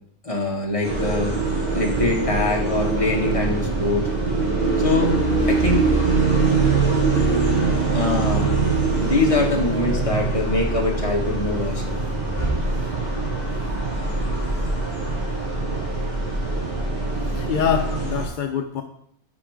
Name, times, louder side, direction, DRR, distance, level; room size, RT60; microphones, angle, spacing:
voice 1, 0.2-1.3 1.7-4.1 4.8-5.1 5.4-5.8 7.9-8.5 9.0-12.0, left 3 dB, 25° left, 0 dB, 1.7 m, -23 dB
sound 1, 0.8-18.2, right 3 dB, 40° right, 3.9 m, -23 dB
voice 2, 17.2-18.8, left 8 dB, 55° left, 6 dB, 0.6 m, -25 dB
9.9 x 6.1 x 5.0 m, 0.70 s
omnidirectional pair, 1.4 m